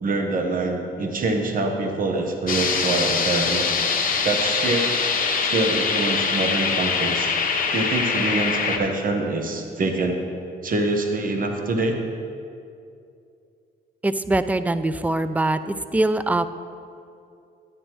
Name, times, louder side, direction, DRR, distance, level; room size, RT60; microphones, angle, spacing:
voice 1, 0.0-3.7 4.2-4.9 5.4-7.3 7.7-10.2 10.6-12.0, right 2 dB, 45° right, 3 dB, 1.1 m, -25 dB
sound 1, 2.5-8.8, left 5 dB, 45° left, 1.1 m, -23 dB
voice 2, 14.0-16.5, right 2 dB, 10° right, 12 dB, 0.3 m, -23 dB
11.0 x 9.7 x 3.0 m, 2.5 s
cardioid pair, 90°, 20 cm